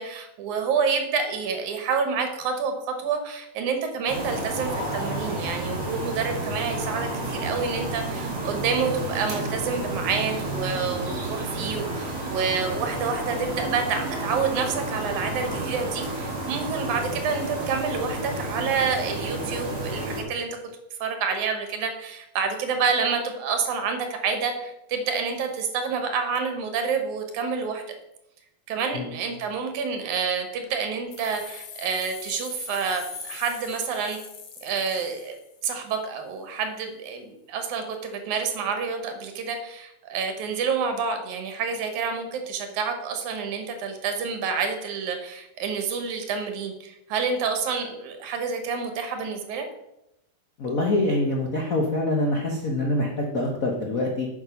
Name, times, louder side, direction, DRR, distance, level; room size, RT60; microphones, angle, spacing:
voice 1, 0.0-20.6 21.0-27.8 28.7-34.2 34.6-35.4 35.6-49.7, right 5 dB, 90° right, 6 dB, 2.7 m, -28 dB
sound 1, 4.1-20.2, right 1 dB, 45° right, 3.0 m, -31 dB
sound 2, 31.1-35.9, left 6 dB, 60° left, 1.6 m, -41 dB
voice 2, 50.6-54.3, left 1 dB, 75° left, 0 dB, 0.7 m, -25 dB
8.9 x 6.4 x 5.2 m, 0.86 s
omnidirectional pair, 3.3 m